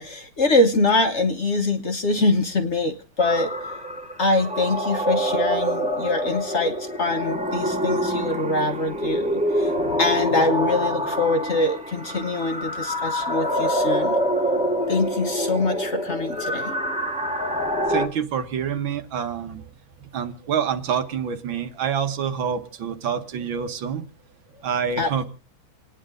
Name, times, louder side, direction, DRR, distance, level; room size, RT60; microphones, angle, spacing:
voice 1, 0.0-3.5 4.2-14.1 14.9-16.7 25.0-25.1, left 2 dB, 40° left, 6 dB, 1.1 m, -24 dB
sound 1, 3.2-18.1, equal, 5° right, 1.1 m, -26 dB
voice 2, 17.9-19.6 20.0-24.0 24.6-25.2, right 7 dB, 70° right, 8 dB, 1.8 m, -27 dB
28.5 x 9.8 x 3.7 m, 0.33 s
omnidirectional pair, 2.3 m